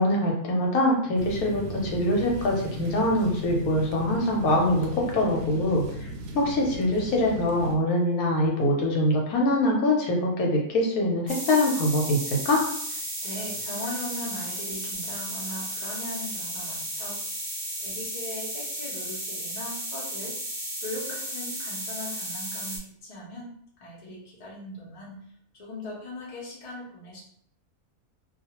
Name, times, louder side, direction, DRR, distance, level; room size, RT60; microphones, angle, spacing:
voice 1, 0.0-6.1 6.3-12.7, left 1 dB, 80° left, -1 dB, 1.2 m, -24 dB
sound 1, 1.2-7.8, right 1 dB, 85° right, 1.1 m, -37 dB
sound 2, 11.3-22.8, right 1 dB, 20° right, 0.7 m, -34 dB
voice 2, 13.2-17.2 17.8-20.3 20.8-23.5 23.8-25.2 25.6-27.2, left 1 dB, 35° left, -5 dB, 0.8 m, -39 dB
2.4 x 2.4 x 2.8 m, 0.66 s
omnidirectional pair, 1.5 m